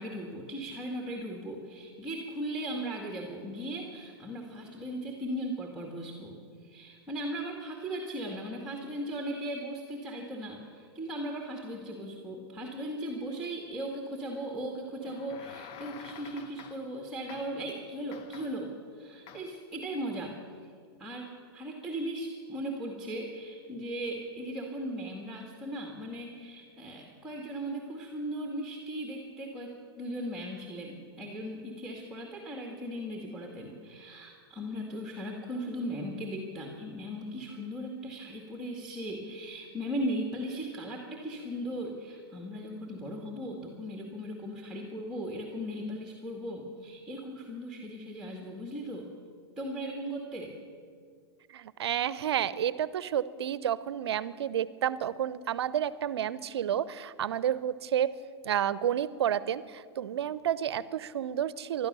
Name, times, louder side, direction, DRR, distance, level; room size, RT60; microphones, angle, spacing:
voice 1, 0.0-6.4 6.6-20.3 21.0-49.1 49.6-50.5, right 1 dB, 5° right, 1 dB, 2.1 m, -37 dB
sound 1, 15.0-17.0 17.3-17.7 18.1-18.7 19.3-19.7, left 9 dB, 40° left, 0.9 m, -49 dB
voice 2, 51.5-58.1 58.4-61.9, right 10 dB, 75° right, 17 dB, 0.7 m, -30 dB
16.5 x 12.0 x 6.9 m, 2.1 s
hypercardioid pair, 115°, 14 cm